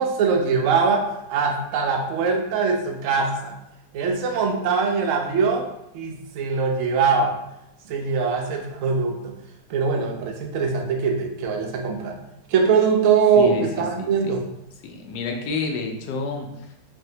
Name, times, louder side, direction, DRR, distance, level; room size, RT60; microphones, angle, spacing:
voice 1, 0.0-3.6 3.9-5.7 5.9-7.4 7.9-9.3 9.7-12.2 12.5-14.4, right 5 dB, 70° right, 2 dB, 0.8 m, -22 dB
voice 2, 13.4-14.4 14.8-16.9, left 4 dB, 85° left, 2 dB, 1.1 m, -30 dB
3.2 x 2.6 x 2.7 m, 0.84 s
omnidirectional pair, 1.7 m